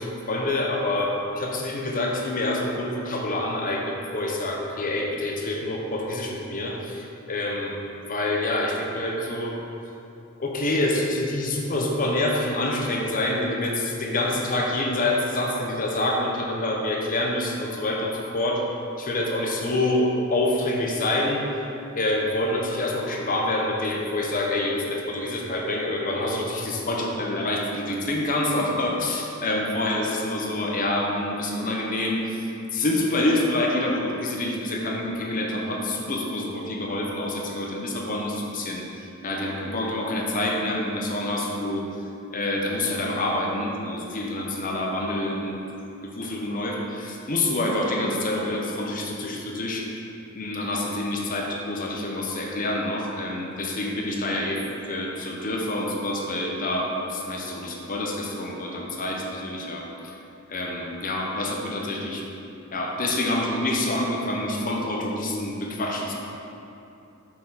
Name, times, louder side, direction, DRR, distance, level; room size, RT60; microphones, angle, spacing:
voice 1, 0.0-7.8 8.1-9.6 10.4-18.6 19.0-21.4 22.0-32.4 32.7-41.8 42.3-45.6 46.0-49.9 50.3-59.9 60.5-62.2 62.7-66.1, left 1 dB, 40° left, 0 dB, 0.8 m, -27 dB
6.6 x 4.6 x 5.6 m, 2.8 s
head